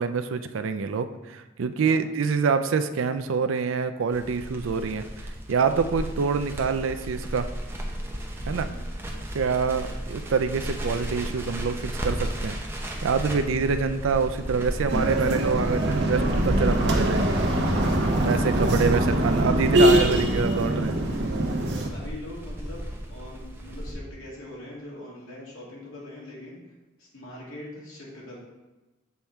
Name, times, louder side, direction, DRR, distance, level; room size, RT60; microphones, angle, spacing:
voice 1, 0.0-5.0 5.5-7.5 8.5-8.7 9.3-12.6 13.0-17.2 18.3-21.0, right 5 dB, 75° right, 10 dB, 0.4 m, -26 dB
Crackle, 4.1-23.9, equal, 10° right, 0.7 m, -35 dB
voice 2, 8.4-8.8 13.3-13.7 21.9-26.6 27.0-28.4, left 1 dB, 85° left, -5 dB, 2.2 m, -43 dB
sound 1, 14.9-21.9, right 1 dB, 60° right, 0.9 m, -23 dB
7.0 x 3.6 x 4.4 m, 1.1 s
head